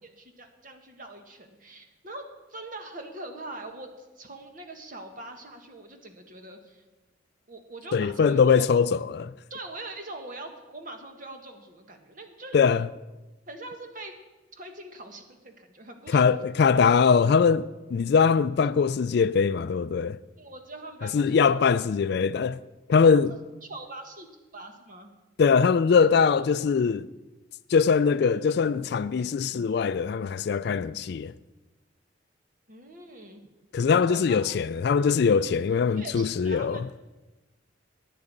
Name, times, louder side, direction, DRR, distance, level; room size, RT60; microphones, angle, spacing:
voice 1, 0.0-6.8 7.5-8.7 9.5-12.6 13.5-14.2 14.5-16.4 20.4-21.8 23.6-24.3 24.5-25.1 32.7-33.4 33.8-34.5 35.9-37.0, right 2 dB, 45° right, 1.6 m, -43 dB
voice 2, 7.9-9.3 12.5-12.9 16.1-20.2 21.1-22.6 22.9-23.3 25.4-27.1 27.7-31.3 33.7-36.8, left 5 dB, 55° left, 0.3 m, -22 dB
10.5 x 10.0 x 8.7 m
head